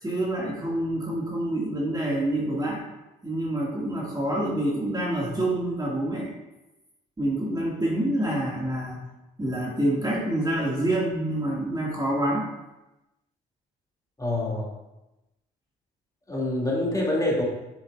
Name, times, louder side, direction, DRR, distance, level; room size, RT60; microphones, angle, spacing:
voice 1, 0.0-2.8 3.2-6.3 7.2-9.0 9.4-12.5, right 1 dB, 20° right, -4 dB, 2.2 m, -27 dB
voice 2, 14.2-14.7 16.3-17.4, left 1 dB, 15° left, -4 dB, 2.7 m, -26 dB
8.0 x 7.2 x 2.6 m, 0.98 s
hypercardioid pair, 50°, 21 cm